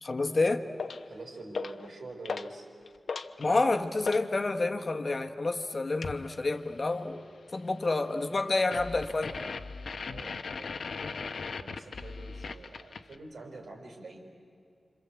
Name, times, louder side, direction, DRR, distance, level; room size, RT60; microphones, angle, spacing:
voice 1, 0.0-0.7 3.4-7.2 7.5-9.3, left 3 dB, 40° left, 5 dB, 1.3 m, -29 dB
sound 1, 0.8-1.1 1.5-1.9 2.2-2.5 2.9-4.3 6.0-6.3 8.7-13.2, left 4 dB, 80° left, 0.9 m, -38 dB
voice 2, 1.1-2.7 10.0-14.3, right 2 dB, 80° right, 2 dB, 4.7 m, -46 dB
27.5 x 26.0 x 8.2 m, 2.4 s
wide cardioid pair, 125°, 0 cm